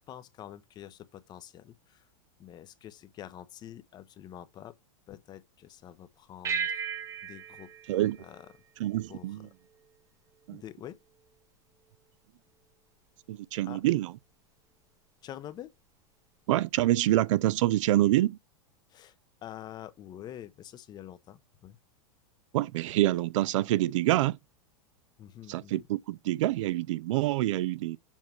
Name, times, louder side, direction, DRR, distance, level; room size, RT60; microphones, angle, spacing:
voice 1, 0.1-2.1 2.4-4.8 5.1-6.8 7.2-7.7 8.2-8.5 9.1-9.5 10.5-11.0 13.6-13.8 15.2-15.7 18.9-19.2 19.4-21.8 25.2-25.9, left 11 dB, 25° left, 0.7 m, -46 dB
sound 1, 6.4-9.2, right 6 dB, 20° right, 0.7 m, -36 dB
voice 2, 8.8-9.5 10.5-10.6 13.3-14.1 16.5-18.4 22.5-24.4 25.5-28.0, right 15 dB, 75° right, 0.4 m, -26 dB
7.2 x 3.0 x 5.8 m
supercardioid pair, 145°, 16 cm